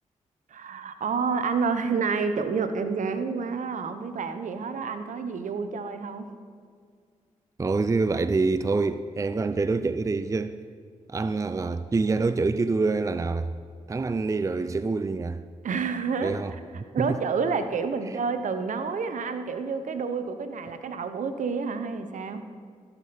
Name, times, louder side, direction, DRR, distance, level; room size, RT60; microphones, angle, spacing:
voice 1, 0.5-6.3 15.6-16.4 16.9-22.4, right 5 dB, 65° right, 0.9 m, -29 dB
voice 2, 7.6-10.6 11.1-13.5 13.9-15.4 16.2-17.2 18.1-18.2, right 3 dB, 25° right, 0.4 m, -26 dB
16.0 x 7.0 x 4.2 m
supercardioid pair, 45°, 14 cm